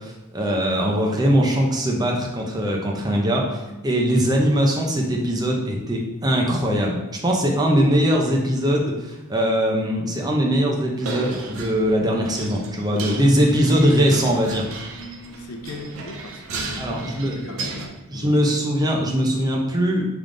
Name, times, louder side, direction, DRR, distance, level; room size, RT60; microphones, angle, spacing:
voice 1, 0.0-14.6 16.8-17.6 18.1-20.0, equal, 20° right, -1 dB, 0.6 m, -21 dB
voice 2, 7.5-7.8 12.9-14.1 14.9-18.9, left 1 dB, 80° left, 4 dB, 0.6 m, -39 dB
sound 1, 11.0-17.9, right 3 dB, 65° right, 0.5 m, -35 dB
3.6 x 3.4 x 3.8 m, 1.0 s
head